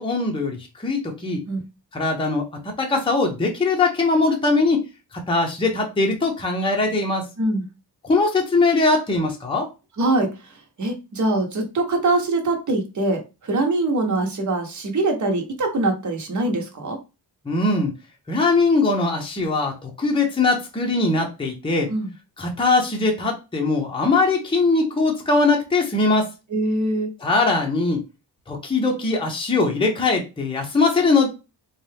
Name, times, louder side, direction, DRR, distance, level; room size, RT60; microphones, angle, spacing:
voice 1, 0.0-1.4 1.9-4.8 5.3-7.2 8.0-9.7 17.5-17.9 18.3-21.9 22.4-26.3 27.2-28.0 28.5-31.3, left 3 dB, 15° left, 1 dB, 0.7 m, -21 dB
voice 2, 7.4-7.7 10.0-10.3 10.8-17.0 21.9-22.1 26.5-27.1, right 2 dB, 45° right, 2 dB, 1.1 m, -23 dB
4.1 x 2.3 x 3.3 m, 0.28 s
wide cardioid pair, 160°, 40 cm